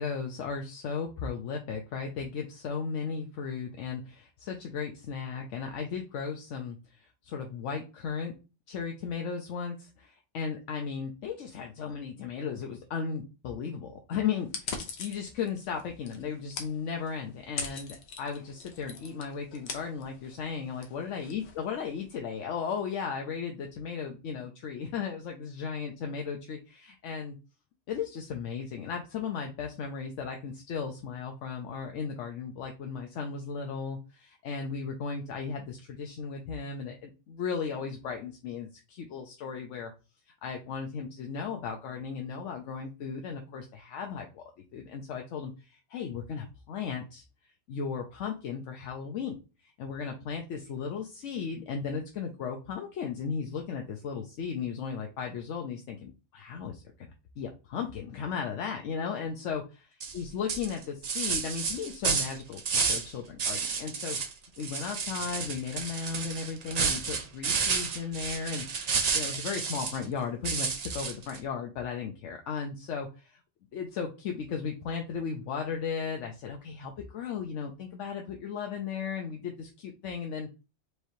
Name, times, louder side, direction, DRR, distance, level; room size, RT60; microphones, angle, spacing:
voice 1, 0.0-8.3 8.7-27.4 27.9-39.9 40.4-44.4 44.7-47.2 47.7-49.4 49.6-59.9 60.1-64.2 64.6-73.4 73.7-80.5, left 6 dB, 85° left, 3 dB, 1.0 m, -36 dB
sound 1, 14.4-22.2, left 5 dB, 65° left, 1.0 m, -42 dB
sound 2, 60.0-60.2 60.5-63.1 63.4-64.3 64.6-70.0 70.4-71.4, right 5 dB, 45° right, 0.6 m, -31 dB
4.8 x 3.1 x 2.7 m, 0.30 s
omnidirectional pair, 1.2 m